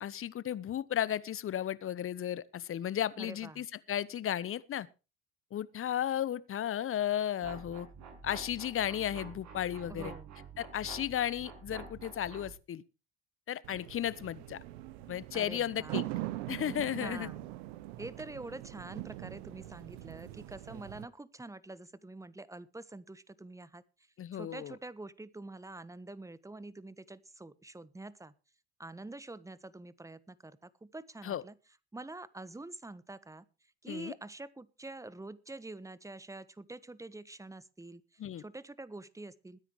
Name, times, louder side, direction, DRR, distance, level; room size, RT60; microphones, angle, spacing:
voice 1, 0.0-4.9 5.5-7.9 8.2-10.1 10.6-12.8 13.5-14.6 15.1-16.0 16.5-17.3 24.2-24.8 31.2-31.4 33.9-34.1 38.2-38.4, left 10 dB, 40° left, 1.1 m, -34 dB
voice 2, 3.2-3.6 9.9-10.3 15.3-16.0 16.9-17.5 18.0-23.8 24.3-28.3 28.8-31.5 31.9-33.4 33.8-38.0 38.4-39.6, right 2 dB, 10° right, 1.2 m, -46 dB
sound 1, 7.4-12.5, right 5 dB, 60° right, 6.5 m, -48 dB
sound 2, 13.6-21.0, right 17 dB, 75° right, 1.1 m, -42 dB
21.5 x 10.0 x 3.2 m
hypercardioid pair, 65°, 32 cm